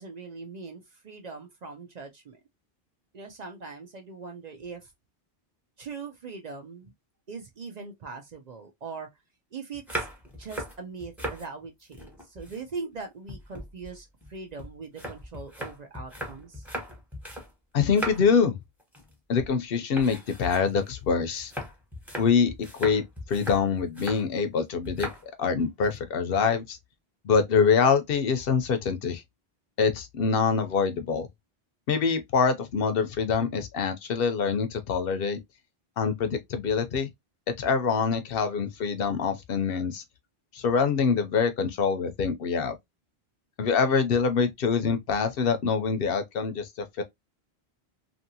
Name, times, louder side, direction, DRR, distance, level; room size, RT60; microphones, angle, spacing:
voice 1, 0.0-2.4 3.1-4.9 5.8-6.9 7.3-9.1 9.5-10.1 10.4-16.7, right 4 dB, 50° right, 0.5 m, -41 dB
sound 1, 9.7-11.5 11.8-13.0 13.3-17.5 17.8-18.4 18.8-19.1 19.4-19.6 19.9-24.3 24.8-25.2 25.6-26.0, right 1 dB, ahead, 0.9 m, -38 dB
voice 2, 17.7-18.6 19.3-21.5 22.2-22.5 22.8-23.0 23.3-25.1 25.4-26.8 27.2-29.2 29.8-31.3 31.9-35.4 36.0-37.1 37.6-40.0 40.5-42.7 43.6-47.0, left 5 dB, 70° left, 0.8 m, -25 dB
2.8 x 2.6 x 2.7 m
omnidirectional pair, 1.0 m